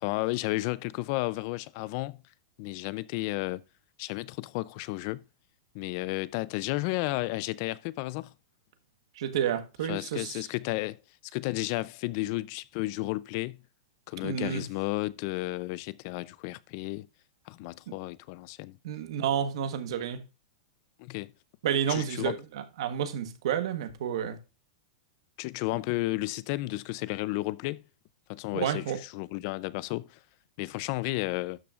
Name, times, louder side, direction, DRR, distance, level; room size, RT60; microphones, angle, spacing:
voice 1, 0.0-2.2 2.6-3.6 4.0-5.2 5.7-8.3 9.9-11.0 11.3-13.6 14.1-17.1 17.5-18.8 21.0-21.3 21.9-22.3 25.4-27.8 28.3-30.2 30.6-31.6, left 20 dB, 35° left, 0.4 m, -32 dB
voice 2, 9.1-10.4 14.2-14.6 17.9-18.0 18.8-20.2 21.6-24.4 28.5-29.0, right 9 dB, 60° right, 1.3 m, -30 dB
12.5 x 5.9 x 2.5 m
supercardioid pair, 170°, 3 cm